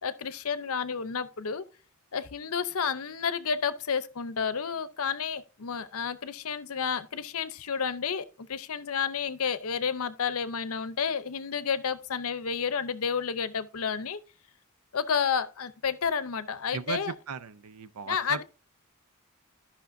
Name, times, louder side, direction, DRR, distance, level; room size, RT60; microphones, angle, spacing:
voice 1, 0.0-1.6 2.1-14.2 14.9-17.1 18.1-18.4, left 6 dB, 70° left, 0.7 m, -31 dB
voice 2, 16.7-18.4, right 6 dB, 85° right, 0.6 m, -37 dB
14.0 x 5.7 x 2.6 m
head